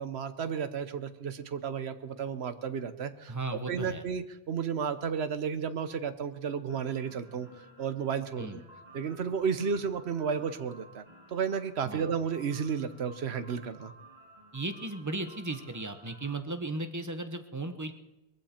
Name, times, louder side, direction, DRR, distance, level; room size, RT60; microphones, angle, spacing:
voice 1, 0.0-3.3 3.7-7.5 7.8-8.6 8.9-13.9, right 6 dB, 70° right, 11 dB, 1.2 m, -33 dB
voice 2, 3.3-4.0 8.4-8.6 11.8-12.0 14.5-17.9, right 2 dB, 15° right, 8 dB, 0.9 m, -36 dB
sound 1, 6.6-16.3, right 1 dB, 40° right, 5.8 m, -55 dB
21.0 x 15.0 x 4.4 m, 1.0 s
omnidirectional pair, 1.1 m